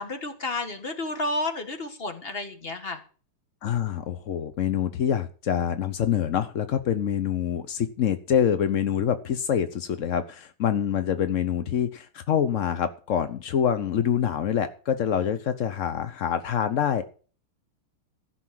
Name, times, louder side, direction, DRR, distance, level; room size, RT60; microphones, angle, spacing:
voice 1, 0.0-3.0, left 2 dB, 30° left, 7 dB, 1.7 m, -31 dB
voice 2, 3.6-17.0, left 8 dB, 65° left, 11 dB, 0.7 m, -26 dB
15.5 x 6.3 x 7.5 m, 0.39 s
omnidirectional pair, 2.4 m